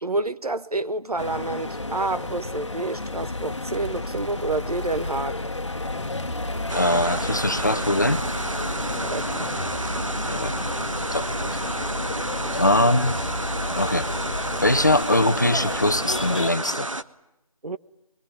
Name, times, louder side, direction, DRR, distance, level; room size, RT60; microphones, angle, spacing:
voice 1, 0.0-5.4 9.0-9.3 17.6-17.8, right 2 dB, 85° right, 1.3 m, -28 dB
sound 1, 1.2-16.5, left 2 dB, 50° left, 1.3 m, -33 dB
sound 2, 3.7-15.0, left 1 dB, 5° left, 1.4 m, -34 dB
voice 2, 6.7-8.2 10.2-10.6 11.1-11.3 12.5-13.1 13.8-14.1 14.6-16.9, left 1 dB, 30° left, 0.9 m, -22 dB
sound 3, 6.7-17.0, right 2 dB, 60° right, 1.3 m, -31 dB
24.0 x 22.5 x 9.6 m
figure-of-eight pair, 175°, 19 cm